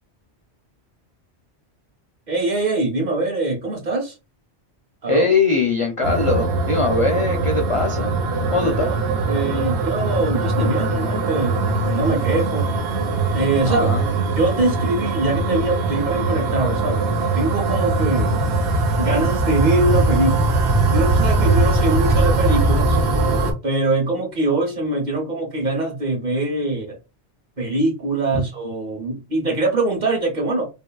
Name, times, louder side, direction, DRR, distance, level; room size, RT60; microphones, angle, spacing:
voice 1, 2.3-4.1 5.0-5.2 8.8-9.0 9.3-12.7 13.3-13.9 14.3-18.4 19.0-23.0 23.6-27.0 27.6-30.7, right 2 dB, 45° right, 1.0 m, -23 dB
voice 2, 5.1-8.1 8.5-8.9 13.7-14.2, left 3 dB, 50° left, 0.4 m, -21 dB
sound 1, 6.0-23.5, right 3 dB, 65° right, 0.9 m, -21 dB
2.9 x 2.6 x 2.2 m
omnidirectional pair, 1.1 m